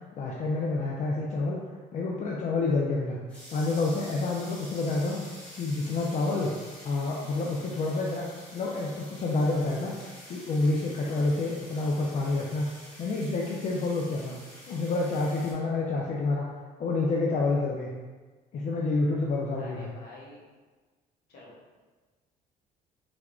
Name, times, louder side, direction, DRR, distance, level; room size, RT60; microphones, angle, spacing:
voice 1, 0.1-1.6 1.9-3.2 3.5-5.2 5.5-6.5 6.8-8.3 8.5-9.9 10.3-12.7 13.0-14.4 14.7-16.5 16.8-17.9 18.5-19.9, left 3 dB, 45° left, -2 dB, 0.4 m, -28 dB
sound 1, 3.3-15.5, equal, 5° left, 1.4 m, -48 dB
voice 2, 19.6-20.4 21.3-21.8, left 2 dB, 70° left, -4 dB, 1.1 m, -48 dB
3.5 x 2.8 x 2.4 m, 1.3 s
cardioid pair, 110°, 17 cm